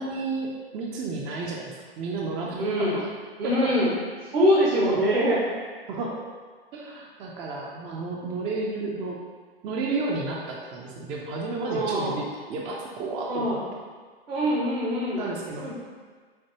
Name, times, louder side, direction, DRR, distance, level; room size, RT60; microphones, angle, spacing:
voice 1, 0.0-3.1 3.4-3.7 4.9-5.0 5.9-6.2 6.7-9.2 9.6-12.2 12.5-13.6 15.2-15.7, right 3 dB, 20° right, -2 dB, 0.4 m, -32 dB
voice 2, 2.6-3.0 3.4-3.9 4.3-5.4 11.7-12.2 13.2-13.6 14.3-15.2 15.6-15.7, equal, 75° right, -6 dB, 1.2 m, -23 dB
6.6 x 2.6 x 2.8 m, 1.5 s
figure-of-eight pair, 110°, 31 cm